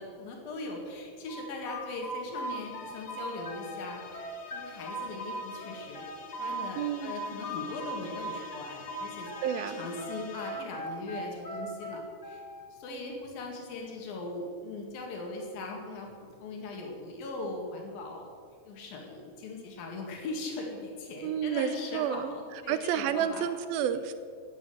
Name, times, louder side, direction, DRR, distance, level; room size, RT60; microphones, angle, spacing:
voice 1, 0.0-4.2 4.5-6.1 6.4-9.3 9.6-12.4 12.8-18.3 18.7-23.5, left 2 dB, 75° left, 1 dB, 3.9 m, -40 dB
sound 1, 1.3-3.8 4.1-6.7 7.1-9.6 10.0-12.6, right 1 dB, 20° left, 2.3 m, -39 dB
sound 2, 2.4-10.9, left 5 dB, 55° left, 1.7 m, -47 dB
voice 2, 6.8-7.2 9.4-9.9 21.2-22.3 22.7-24.1, right 9 dB, 85° right, 12 dB, 2.6 m, -30 dB
12.5 x 8.4 x 9.8 m, 2.2 s
omnidirectional pair, 4.1 m